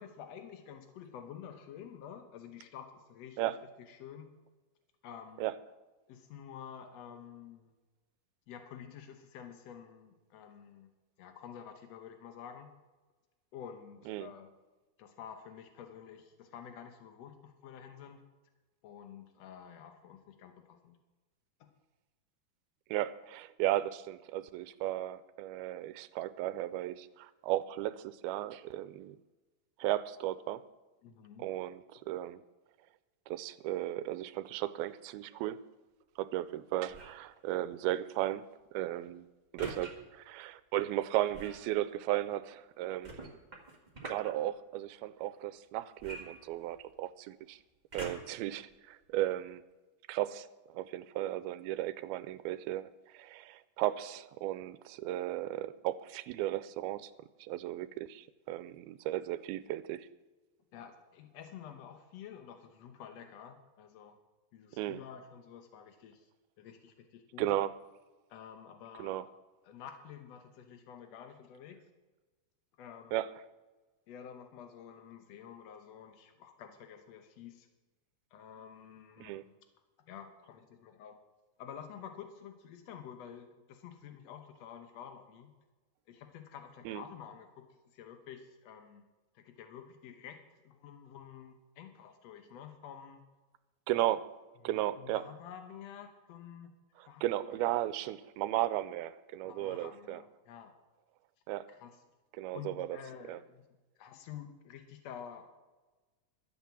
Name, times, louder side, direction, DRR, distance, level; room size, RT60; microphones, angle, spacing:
voice 1, 0.0-4.3 5.0-5.5 6.1-7.7 8.5-10.9 11.2-12.7 13.5-14.5 15.0-18.2 18.8-21.0 21.6-21.7 31.0-31.5 60.7-64.2 64.5-66.3 66.6-67.5 68.3-69.3 69.6-71.8 72.8-73.2 74.1-77.7 78.3-79.4 80.1-81.2 81.6-85.5 86.1-89.1 89.3-93.2 94.6-97.6 99.4-100.7 101.7-102.0 102.5-103.7 104.0-105.5, left 8 dB, 80° left, 6 dB, 1.5 m, -50 dB
voice 2, 22.9-29.2 29.8-30.6 31.4-32.4 33.3-35.6 36.2-38.4 38.7-39.2 39.5-43.1 44.0-47.6 47.9-49.6 50.1-57.1 57.4-60.1 64.8-65.0 67.4-67.7 69.0-69.3 73.1-73.3 79.2-79.4 86.9-87.0 93.9-94.3 94.6-95.2 97.0-100.2 101.5-101.7 102.4-103.0 103.3-103.4, right 14 dB, 90° right, 15 dB, 2.5 m, -35 dB
sound 1, 36.9-37.3 39.6-39.9 41.3-41.7 43.0-44.3 46.0-47.0 47.9-48.4 49.1-49.2, right 2 dB, 30° right, 0.8 m, -44 dB
12.5 x 8.5 x 7.2 m, 1.2 s
omnidirectional pair, 4.3 m